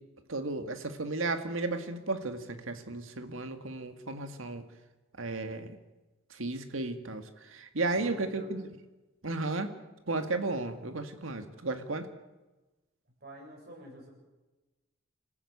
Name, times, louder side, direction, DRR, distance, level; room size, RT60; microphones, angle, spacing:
voice 1, 0.3-4.6 5.2-5.8 6.3-8.6 9.2-9.7 10.1-12.1, right 2 dB, 80° right, 7 dB, 1.9 m, -34 dB
voice 2, 8.0-8.5 13.2-14.1, right 1 dB, 55° right, 1 dB, 7.6 m, -48 dB
27.0 x 14.5 x 8.6 m, 1.1 s
head